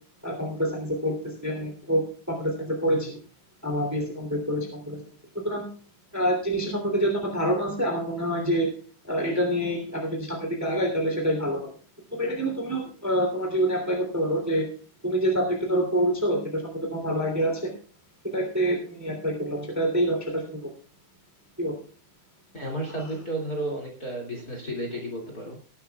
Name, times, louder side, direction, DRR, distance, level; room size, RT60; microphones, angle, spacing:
voice 1, 0.2-3.2 3.6-5.0 5.4-5.7 6.1-8.7 9.0-11.7 12.1-14.7 15.0-17.7 18.3-20.6 21.6-21.8, equal, 5° right, 2 dB, 2.5 m, -26 dB
voice 2, 22.5-25.6, right 1 dB, 30° left, -1 dB, 2.7 m, -33 dB
19.0 x 11.5 x 2.4 m, 0.41 s
omnidirectional pair, 3.8 m